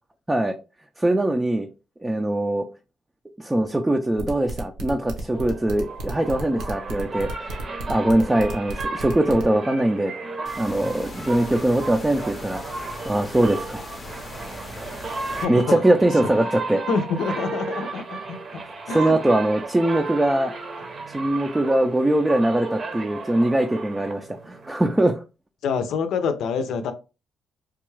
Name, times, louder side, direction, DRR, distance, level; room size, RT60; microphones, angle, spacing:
voice 1, 1.0-1.7 2.0-2.6 3.4-7.3 7.9-10.1 10.6-12.6 13.0-13.9 14.8-14.9 15.2-16.8 18.9-20.5 21.1-25.2, right 1 dB, 15° right, 0.5 m, -22 dB
sound 1, 4.2-9.4, right 1 dB, 85° right, 0.9 m, -35 dB
sound 2, 5.3-24.7, right 3 dB, 45° right, 0.7 m, -34 dB
sound 3, 10.5-15.5, left 2 dB, 35° left, 0.6 m, -39 dB
voice 2, 15.4-15.8 16.9-18.4 18.9-19.2 25.6-26.9, left 5 dB, 80° left, 0.6 m, -26 dB
3.5 x 2.3 x 3.1 m
cardioid pair, 90°, 0 cm